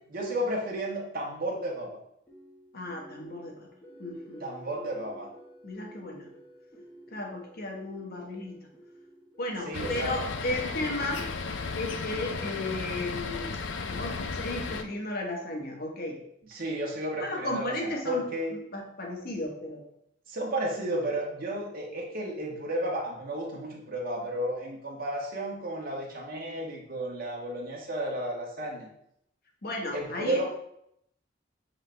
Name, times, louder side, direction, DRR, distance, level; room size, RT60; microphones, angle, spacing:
voice 1, 0.1-1.9 4.4-5.3 9.6-10.2 16.5-18.5 20.3-28.9 29.9-30.5, right 1 dB, 50° right, -2 dB, 1.5 m, -32 dB
sound 1, 2.3-12.4, right 1 dB, 10° left, 1.6 m, -52 dB
voice 2, 2.7-3.7 4.0-4.4 5.6-6.3 7.1-8.7 9.4-11.3 11.7-13.5 13.9-16.2 17.2-18.2 18.7-19.8 29.6-30.5, left 1 dB, 55° left, 1 dB, 1.3 m, -34 dB
sound 2, 9.7-14.8, left 4 dB, 75° left, 0.5 m, -34 dB
7.7 x 4.0 x 3.4 m, 0.74 s
head